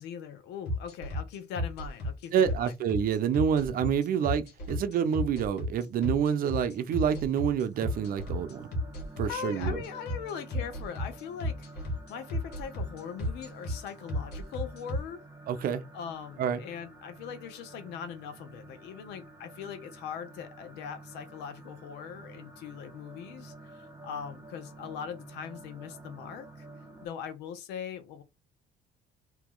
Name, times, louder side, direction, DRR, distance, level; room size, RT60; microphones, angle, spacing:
voice 1, 0.0-2.7 9.2-11.7 12.1-15.2 15.9-26.7 27.0-28.2, left 7 dB, 90° left, 0.7 m, -41 dB
sound 1, 0.7-15.0, left 1 dB, 70° left, 1.4 m, -32 dB
voice 2, 2.3-8.7 9.2-9.8 15.5-15.8 16.4-16.6, right 8 dB, 60° right, 0.6 m, -28 dB
sound 2, 7.7-27.1, right 2 dB, 15° right, 1.3 m, -50 dB
2.8 x 2.8 x 3.8 m
cardioid pair, 110°, 17 cm